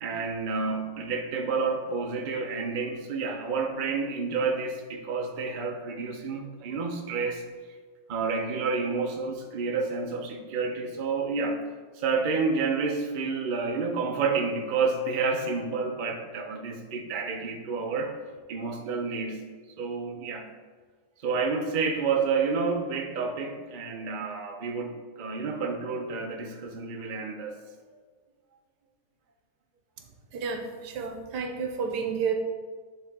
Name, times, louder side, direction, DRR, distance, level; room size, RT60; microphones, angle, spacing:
voice 1, 0.0-7.4 8.1-11.6 11.9-18.2 18.5-19.5 19.8-20.5 21.2-27.6, right 4 dB, 60° right, 3 dB, 0.5 m, -29 dB
voice 2, 30.3-32.3, right 6 dB, 85° right, 5 dB, 1.3 m, -31 dB
9.8 x 3.7 x 3.6 m, 1.5 s
omnidirectional pair, 1.8 m